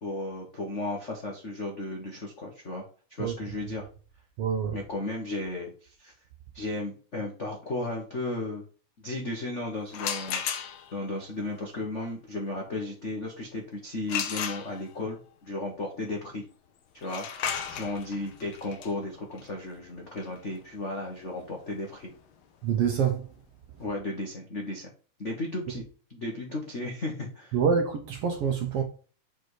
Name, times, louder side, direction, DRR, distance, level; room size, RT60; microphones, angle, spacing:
voice 1, 0.0-3.9 4.7-6.1 6.5-8.6 9.0-10.4 10.9-16.4 16.9-22.1 23.8-24.9 25.2-25.8 26.1-27.6, left 2 dB, 65° left, 0.7 m, -35 dB
voice 2, 4.4-4.8 22.6-23.3 27.5-28.8, right 7 dB, 65° right, 1.5 m, -26 dB
sound 1, 9.9-11.1 14.1-15.1 17.0-22.7, left 8 dB, 85° left, 1.1 m, -35 dB
6.1 x 4.8 x 4.7 m
omnidirectional pair, 3.6 m